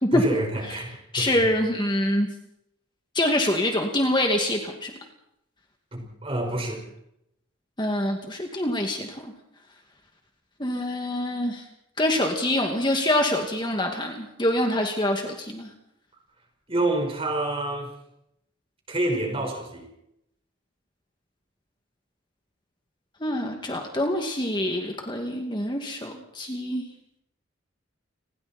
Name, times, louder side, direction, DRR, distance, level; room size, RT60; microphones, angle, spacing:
voice 1, 0.1-1.5 5.9-6.8 16.7-17.9 18.9-19.9, right 2 dB, 25° right, 3 dB, 5.4 m, -28 dB
voice 2, 1.1-2.3 3.1-4.9 7.8-9.3 10.6-11.6 12.0-15.7 23.2-26.8, left 1 dB, 20° left, 2 dB, 2.4 m, -25 dB
29.5 x 21.0 x 4.5 m, 0.79 s
head